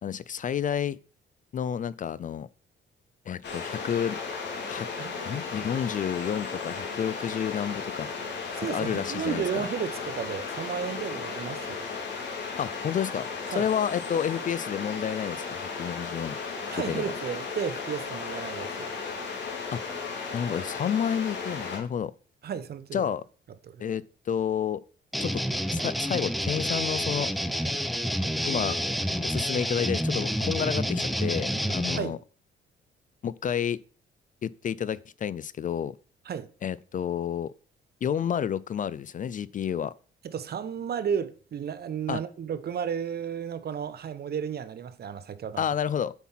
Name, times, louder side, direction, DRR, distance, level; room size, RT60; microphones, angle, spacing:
voice 1, 0.0-1.0 1.5-2.5 3.3-4.2 4.6-4.9 5.2-8.1 8.6-9.6 12.6-13.3 13.6-16.4 16.9-17.0 19.7-19.8 20.3-22.1 22.9-23.2 23.8-24.8 25.2-25.4 25.7-27.3 28.5-28.8 29.2-32.2 33.2-33.8 34.4-36.0 36.6-37.5 38.0-39.9 42.1-42.2 45.6-46.1, left 8 dB, 40° left, 0.4 m, -30 dB
sound 1, 3.4-21.8, left 4 dB, 65° left, 3.0 m, -35 dB
voice 2, 5.0-5.7 8.6-11.9 13.5-13.7 16.7-18.9 22.4-23.0 23.6-23.9 32.0-32.2 36.2-36.5 40.2-45.6, right 7 dB, 55° right, 1.0 m, -33 dB
sound 2, 25.1-32.0, equal, ahead, 0.7 m, -28 dB
8.4 x 5.9 x 5.7 m
cardioid pair, 90°, 20 cm